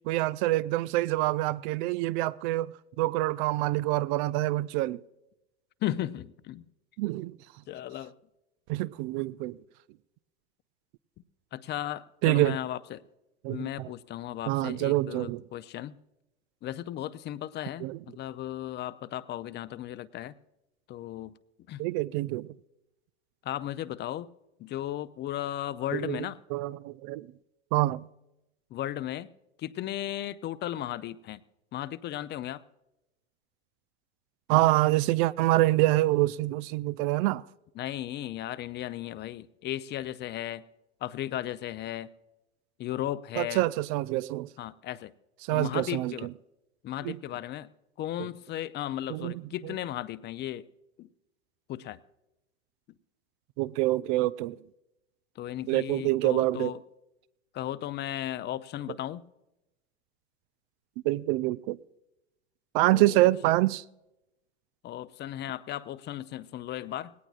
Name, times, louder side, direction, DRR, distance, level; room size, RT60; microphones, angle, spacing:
voice 1, 0.1-5.0 7.0-7.4 8.7-9.6 12.2-12.6 13.4-13.9 14.5-15.4 17.8-18.0 21.8-22.5 25.9-26.3 26.5-27.3 27.7-28.0 34.5-37.4 43.4-44.5 45.4-46.1 47.0-47.2 49.1-49.3 53.6-54.6 55.7-56.7 61.0-61.8 62.7-63.8, right 17 dB, 50° right, 0.4 m, -26 dB
voice 2, 5.8-6.7 7.7-8.1 11.5-13.0 13.5-16.0 16.6-20.3 20.9-21.3 21.7-21.8 23.4-24.3 24.6-26.4 28.7-29.3 29.6-31.4 31.7-32.6 35.4-35.5 37.8-40.6 41.0-42.1 42.8-43.6 44.6-45.1 45.5-46.3 46.8-47.7 48.0-50.7 51.0-51.1 51.7-52.0 55.4-56.8 57.5-59.3 62.8-63.3 64.8-67.1, left 13 dB, 30° left, 0.5 m, -35 dB
19.0 x 18.0 x 2.4 m
hypercardioid pair, 90°, 33 cm